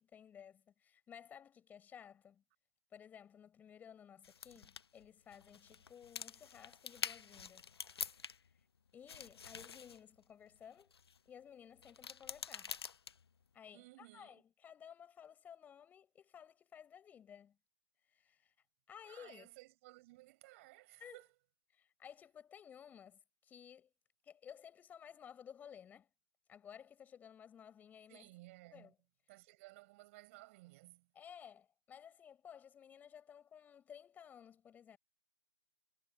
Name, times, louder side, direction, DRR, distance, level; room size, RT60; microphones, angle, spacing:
voice 1, 0.0-2.4 2.9-7.7 8.1-8.7 8.9-10.9 11.3-12.7 13.5-17.6 18.1-18.5 18.9-19.5 21.0-21.2 21.7-23.9 24.2-26.1 26.5-28.3 28.7-29.0 31.1-35.0, left 8 dB, 10° left, 7.2 m, -56 dB
sound 1, 4.2-8.6 8.9-11.2 11.8-13.4, left 6 dB, 65° left, 0.8 m, -47 dB
voice 2, 13.7-14.4 19.0-21.3 28.1-28.9 29.3-31.1, right 21 dB, 30° right, 5.5 m, -58 dB
figure-of-eight pair, 140°, 14 cm